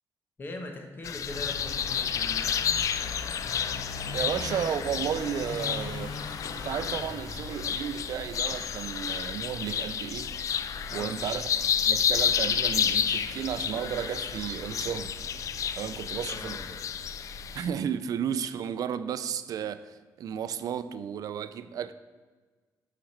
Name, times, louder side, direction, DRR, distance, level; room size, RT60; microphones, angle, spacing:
voice 1, 0.4-2.5 10.9-11.2 16.3-16.9, left 2 dB, 30° left, 1.1 m, -41 dB
sound 1, 1.0-17.7, left 8 dB, 55° left, 0.3 m, -31 dB
sound 2, 1.3-17.4, left 5 dB, 85° left, 0.7 m, -42 dB
voice 2, 4.1-6.1 6.6-10.4 10.9-11.5 11.9-15.1 15.7-16.6 17.5-21.9, right 8 dB, 65° right, 0.4 m, -33 dB
6.0 x 5.0 x 6.5 m
cardioid pair, 145°, 7 cm